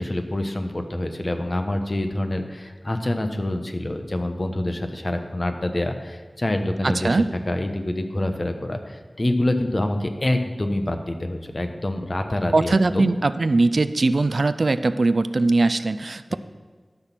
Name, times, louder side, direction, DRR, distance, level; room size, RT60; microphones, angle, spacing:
voice 1, 0.0-13.1 16.3-16.4, left 1 dB, 45° left, 6 dB, 1.1 m, -26 dB
voice 2, 6.8-7.3 12.5-16.4, right 3 dB, 75° right, 13 dB, 0.4 m, -20 dB
12.5 x 6.2 x 5.9 m, 1.5 s
wide cardioid pair, 50°, 0 cm